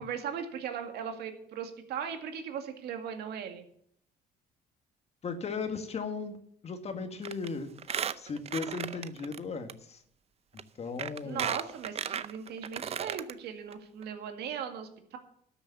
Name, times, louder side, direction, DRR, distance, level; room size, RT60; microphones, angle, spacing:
voice 1, 0.0-3.7 11.2-15.2, right 7 dB, 75° right, 6 dB, 2.1 m, -38 dB
voice 2, 5.2-6.4 6.6-7.7 8.2-10.0 10.8-11.5, left 4 dB, 40° left, 7 dB, 1.8 m, -36 dB
Squeak, 7.2-7.5 7.8-9.4 9.7-9.8 10.6-10.7 11.0-13.3 13.7-13.8 14.0-14.1, right 8 dB, 40° right, 0.6 m, -35 dB
12.5 x 7.0 x 7.1 m, 0.66 s
cardioid pair, 110°, 17 cm